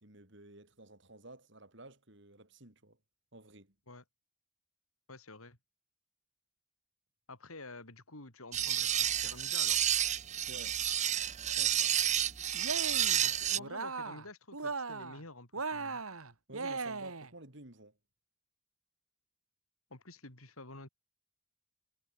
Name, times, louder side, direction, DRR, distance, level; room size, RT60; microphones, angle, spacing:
voice 1, 0.0-3.0 3.3-3.7 10.5-10.8 11.5-12.0 16.5-18.0, right 2 dB, 55° right, 3.4 m, -53 dB
voice 2, 5.1-5.6 7.3-9.8 13.2-16.0 19.9-20.9, left 2 dB, 80° left, 5.5 m, -50 dB
sound 1, 8.5-13.6, right 11 dB, 35° right, 0.7 m, -30 dB
Cheering, 12.5-13.2 13.6-14.3 14.5-15.2 15.5-17.3, right 4 dB, 80° right, 2.2 m, -38 dB
head